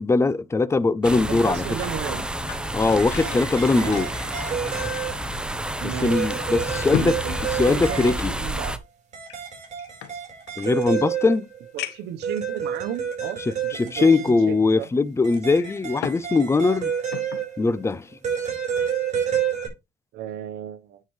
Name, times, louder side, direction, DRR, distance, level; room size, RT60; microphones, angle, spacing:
voice 1, 0.0-1.6 2.7-4.1 5.8-7.2 7.5-8.3 10.6-11.5 13.5-16.9 17.6-18.1, left 3 dB, 15° left, 0.6 m, -21 dB
sound 1, 1.0-8.8, right 1 dB, 5° right, 1.0 m, -30 dB
sound 2, 1.3-5.4 5.7-5.8 6.4-8.4 9.2-10.7 11.2-11.3 11.8-12.2 13.0-13.1 15.3-16.3 16.6-17.5 17.9-18.1, left 11 dB, 85° left, 1.2 m, -36 dB
voice 2, 1.3-2.3 3.8-4.0 5.8-6.3 6.9-7.4 7.7-8.8 11.7-13.4 13.8-14.9 20.1-21.0, right 10 dB, 85° right, 1.1 m, -33 dB
sound 3, 3.0-5.4 6.1-8.5 9.1-11.7 12.2-14.6 15.2-17.9 18.2-19.7, right 8 dB, 45° right, 5.1 m, -30 dB
9.3 x 6.7 x 3.2 m
cardioid pair, 110°, 17 cm